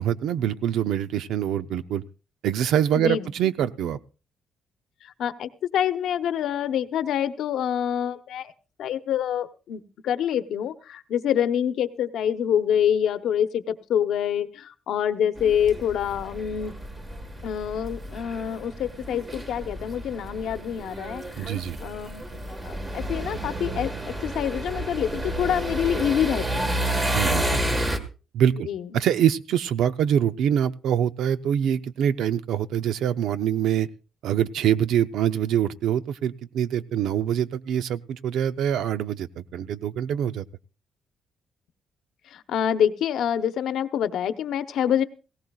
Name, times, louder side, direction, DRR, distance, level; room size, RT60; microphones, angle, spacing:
voice 1, 0.0-2.0 2.4-4.0 21.4-21.8 27.1-27.8 28.3-28.7 28.9-33.9 34.2-40.4, right 9 dB, 85° right, 13 dB, 0.6 m, -24 dB
voice 2, 2.9-3.3 5.0-8.5 8.8-16.7 17.4-26.8 28.6-29.0 42.2-45.0, left 9 dB, 75° left, 9 dB, 0.9 m, -26 dB
sound 1, 15.4-28.0, right 1 dB, 20° right, 1.5 m, -31 dB
18.5 x 17.0 x 2.4 m, 0.34 s
cardioid pair, 155°, 0 cm